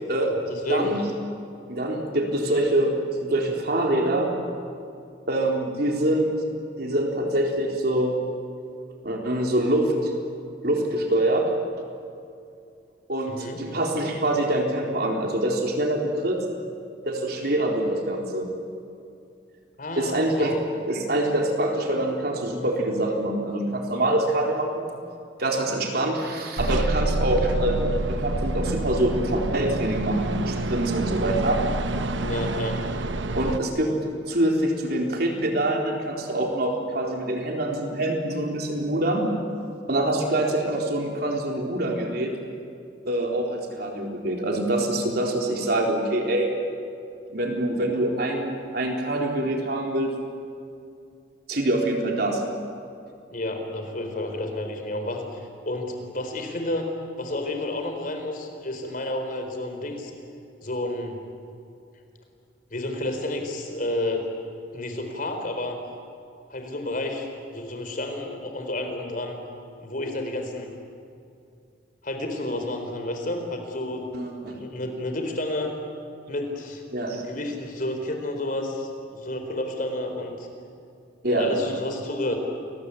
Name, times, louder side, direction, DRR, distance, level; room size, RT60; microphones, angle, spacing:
voice 1, 0.2-0.9 13.3-13.6 19.8-20.5 32.2-32.8 53.3-55.2 55.7-56.9 57.2-60.1 60.6-61.2 62.7-64.3 64.7-65.8 66.5-69.4 69.8-70.7 72.0-74.1 74.6-75.7 76.3-76.8 77.1-80.5 81.3-82.4, left 1 dB, 45° left, 5 dB, 4.2 m, -30 dB
voice 2, 1.7-2.9 3.2-4.3 5.3-6.3 6.8-8.2 9.0-10.1 10.6-11.5 13.1-16.4 17.0-18.5 20.0-20.6 20.9-24.8 25.4-31.6 33.4-33.9 34.3-39.3 39.9-42.3 43.0-46.5 47.3-50.1 51.5-52.4 74.1-74.6 76.9-77.2 81.2-81.5, right 1 dB, 55° right, 1 dB, 4.0 m, -25 dB
sound 1, 26.6-33.6, right 2 dB, 70° right, 1.0 m, -27 dB
29.5 x 22.0 x 8.6 m, 2.5 s
head